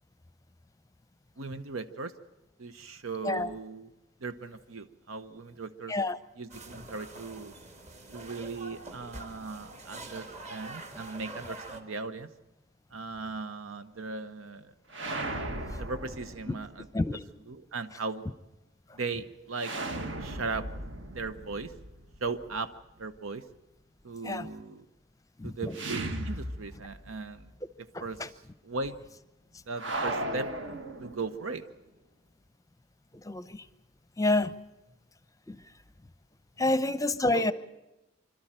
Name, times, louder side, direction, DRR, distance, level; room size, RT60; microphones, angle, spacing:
voice 1, 1.4-2.1 2.6-3.9 4.2-5.9 6.4-7.5 8.1-12.3 12.9-14.7 15.8-16.9 17.5-18.2 18.9-19.7 20.2-20.7 21.1-21.7 22.2-22.7 23.0-23.4 24.0-24.8 25.4-27.5 28.0-28.2 28.6-29.0 29.7-30.5 31.0-31.6 37.3-37.5, right 4 dB, 90° right, 10 dB, 0.9 m, -37 dB
sound 1, 6.5-11.8, right 2 dB, 35° right, 1.9 m, -45 dB
sound 2, 14.9-16.9 19.6-22.6 25.7-27.1 27.4-27.5 29.8-31.5, right 1 dB, 65° right, 1.7 m, -36 dB
voice 2, 25.4-25.8 27.9-28.3 33.1-33.7 34.2-34.5 35.5-35.6 36.6-37.5, left 2 dB, 15° left, 15 dB, 0.7 m, -28 dB
26.0 x 13.0 x 8.9 m, 1.0 s
head